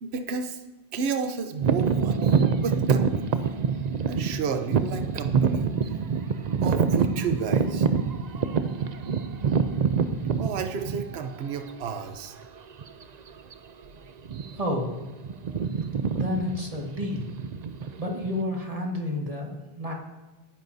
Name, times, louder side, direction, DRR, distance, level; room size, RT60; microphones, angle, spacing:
voice 1, 0.0-0.6 0.9-3.5 4.1-5.9 6.6-7.9 10.4-12.4, right 6 dB, 70° right, 7 dB, 1.0 m, -32 dB
sound 1, 1.6-11.4 12.0-12.1 12.8-13.0 13.3-13.5 14.2-14.7 15.0-18.4, right 6 dB, 50° right, 0.6 m, -25 dB
voice 2, 14.6-14.9 16.1-17.3 18.0-19.9, left 1 dB, 35° right, -1 dB, 1.8 m, -30 dB
18.0 x 10.0 x 2.7 m, 1.1 s
omnidirectional pair, 1.1 m